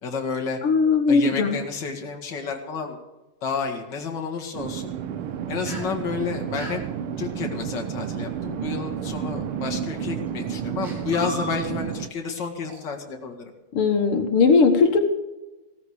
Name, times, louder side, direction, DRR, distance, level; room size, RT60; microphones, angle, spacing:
voice 1, 0.0-0.6 1.1-3.0 3.4-4.9 5.5-6.8 7.2-13.5, left 5 dB, 55° left, 3 dB, 2.4 m, -30 dB
voice 2, 0.6-1.6 13.7-15.0, left 4 dB, 90° left, 6 dB, 2.2 m, -18 dB
sound 1, 4.5-12.1, right 8 dB, 75° right, 1.7 m, -31 dB
sound 2, 5.7-5.9 6.6-6.8 8.5-8.7 9.5-9.8 10.5-10.6 10.8-12.0 12.3-12.4 12.7-12.8, right 1 dB, 35° right, 4.7 m, -36 dB
16.0 x 14.0 x 4.8 m, 1.1 s
omnidirectional pair, 2.4 m